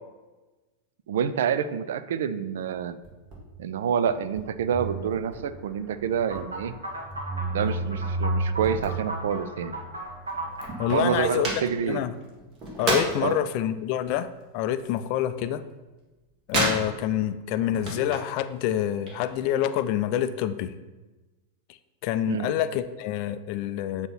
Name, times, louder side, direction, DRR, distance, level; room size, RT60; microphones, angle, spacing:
voice 1, 1.1-3.0 3.6-6.7 7.5-9.7 10.9-12.0 13.2-13.4 22.3-22.5, right 7 dB, 60° right, 13 dB, 0.3 m, -27 dB
sound 1, 2.7-3.4 3.7-5.4 5.8-6.7 7.1-9.7 10.0-10.1 10.2-13.4 13.7-15.7 15.9-17.3 17.6-18.4 18.7-19.6, right 1 dB, 35° right, 1.8 m, -32 dB
sound 2, 4.7-11.3, right 2 dB, 10° left, 0.9 m, -33 dB
sound 3, 6.3-11.4, right 2 dB, 75° right, 1.3 m, -36 dB
voice 2, 10.8-11.5 11.9-12.2 12.8-14.3 14.5-15.6 16.5-20.7 22.0-24.1, left 11 dB, 45° left, 11 dB, 0.4 m, -27 dB
7.7 x 2.9 x 5.8 m, 1.2 s
figure-of-eight pair, 90°, 0 cm